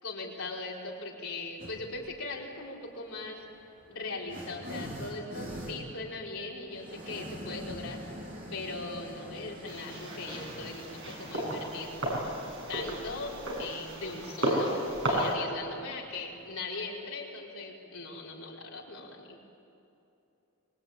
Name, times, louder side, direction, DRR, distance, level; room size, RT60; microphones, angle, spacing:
voice 1, 0.0-3.4 3.9-8.0 8.5-11.9 12.7-14.8 15.1-19.4, left 3 dB, 70° left, -3 dB, 4.9 m, -39 dB
sound 1, 1.6-2.1 3.0-16.5, equal, 35° right, 4.0 m, -45 dB
sound 2, 9.7-15.3, right 1 dB, 55° right, 6.5 m, -33 dB
24.5 x 23.0 x 9.2 m, 2.8 s
head